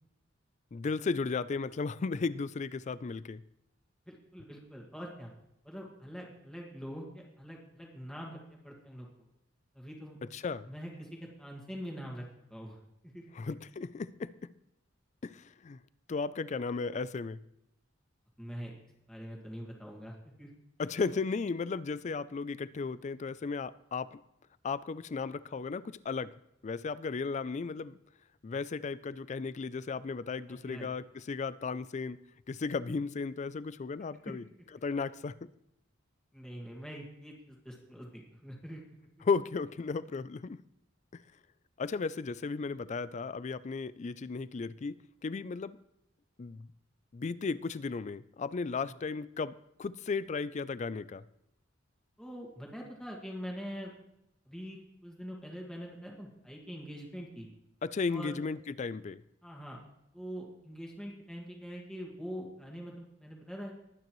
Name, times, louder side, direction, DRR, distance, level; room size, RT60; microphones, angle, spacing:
voice 1, 0.7-3.4 10.3-10.7 13.3-14.5 15.2-15.8 16.1-17.4 20.8-24.2 24.6-26.3 26.6-28.0 28.4-32.2 32.5-34.4 34.8-35.3 39.2-40.6 41.1-41.2 41.8-45.8 46.4-46.7 47.1-49.5 49.8-51.2 57.8-59.2, left 4 dB, 35° left, 17 dB, 0.4 m, -35 dB
voice 2, 4.1-5.3 5.6-9.1 9.7-10.2 10.7-12.2 12.5-12.8 13.0-13.2 18.4-18.7 19.1-20.5 30.5-30.9 34.2-34.3 36.3-38.8 48.9-49.0 52.2-53.9 54.5-57.5 58.1-58.4 59.4-59.8 60.1-63.7, equal, 5° left, -2 dB, 1.9 m, -44 dB
22.0 x 9.3 x 3.1 m, 0.82 s
head